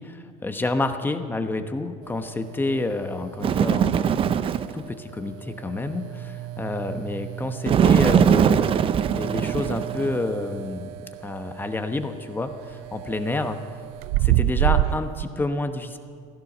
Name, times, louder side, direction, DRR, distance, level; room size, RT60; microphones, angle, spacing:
voice 1, 0.0-4.0 4.3-4.4 4.7-8.7 9.1-10.9 11.2-13.6 14.2-16.0, left 2 dB, 10° left, 7 dB, 1.0 m, -29 dB
sound 1, 2.0-15.2, right 15 dB, 85° right, 0.5 m, -31 dB
Bird, 3.4-4.8 7.7-10.2, right 8 dB, 30° right, 0.5 m, -20 dB
16.0 x 14.0 x 6.1 m, 2.2 s
cardioid pair, 135°, 18 cm